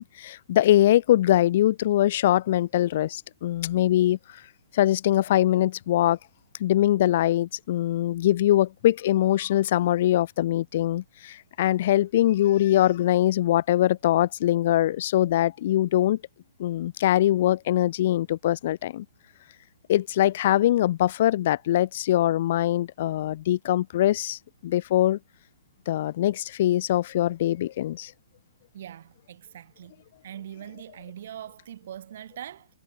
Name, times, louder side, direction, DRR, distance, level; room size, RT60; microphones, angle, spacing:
voice 1, 0.0-4.2 4.7-6.2 6.6-16.2 16.6-19.0 19.9-25.2 25.9-28.1, left 13 dB, 55° left, 0.3 m, -22 dB
voice 2, 28.7-29.9 30.2-32.7, right 10 dB, 60° right, 1.9 m, -42 dB
hypercardioid pair, 125°, 0 cm